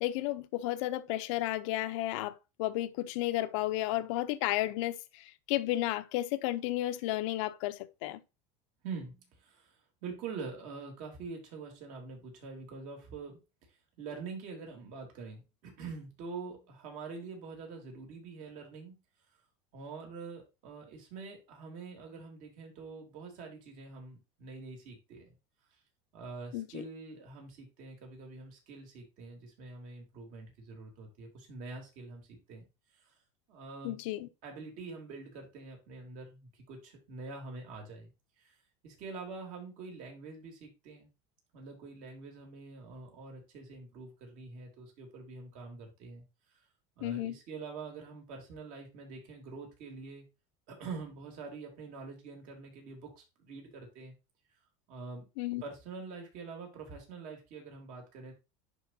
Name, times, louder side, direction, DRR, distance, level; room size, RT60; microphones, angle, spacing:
voice 1, 0.0-8.2 26.5-26.7 33.8-34.3 47.0-47.3 55.4-55.6, left 16 dB, 70° left, 0.7 m, -33 dB
voice 2, 8.8-9.7 10.0-13.4 14.0-18.9 19.7-25.4 26.1-32.7 33.0-33.1 33.5-34.0 34.4-38.1 38.4-38.5 38.8-41.1 41.5-46.2 47.0-50.2 50.7-54.1 54.9-55.3 55.6-58.3, right 4 dB, 50° right, 3.3 m, -45 dB
10.5 x 4.5 x 2.8 m
supercardioid pair, 150°, 17 cm